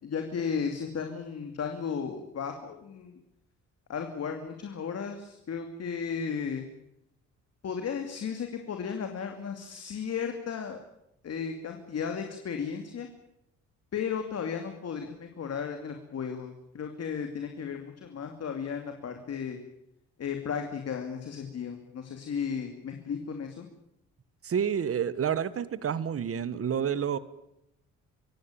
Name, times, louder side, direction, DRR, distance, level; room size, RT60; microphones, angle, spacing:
voice 1, 0.0-3.2 3.9-6.7 7.6-10.8 11.2-13.1 13.9-19.6 20.2-23.7, left 6 dB, 55° left, 2.7 m, -34 dB
voice 2, 24.4-27.2, right 8 dB, 50° right, 1.5 m, -29 dB
25.5 x 16.0 x 9.0 m
cardioid pair, 90°, 30 cm